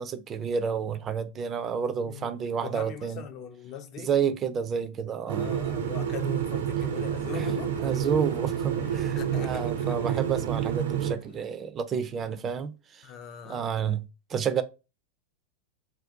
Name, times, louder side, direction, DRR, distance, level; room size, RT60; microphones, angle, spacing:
voice 1, 0.0-3.2 4.0-5.5 7.3-7.5 7.8-13.1 13.5-14.6, right 7 dB, 30° right, 0.3 m, -30 dB
voice 2, 2.1-4.1 5.4-8.1 8.9-10.0 13.0-13.7, left 8 dB, 45° left, 0.4 m, -40 dB
sound 1, 5.3-11.1, right 9 dB, 80° right, 0.5 m, -29 dB
sound 2, 5.8-11.5, left 4 dB, 80° left, 0.6 m, -50 dB
2.5 x 2.2 x 3.6 m
hypercardioid pair, 105°, 0 cm